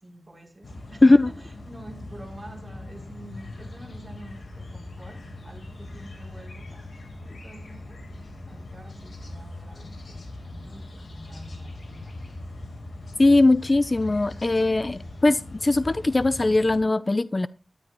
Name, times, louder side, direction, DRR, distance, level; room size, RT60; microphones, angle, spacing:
voice 1, 0.0-8.0 8.5-12.2, right 1 dB, 20° right, 6.2 m, -47 dB
sound 1, 0.6-16.8, left 2 dB, 70° left, 3.5 m, -40 dB
voice 2, 13.2-17.5, left 2 dB, 40° left, 0.5 m, -20 dB
14.0 x 12.5 x 3.0 m
cardioid pair, 50°, 0 cm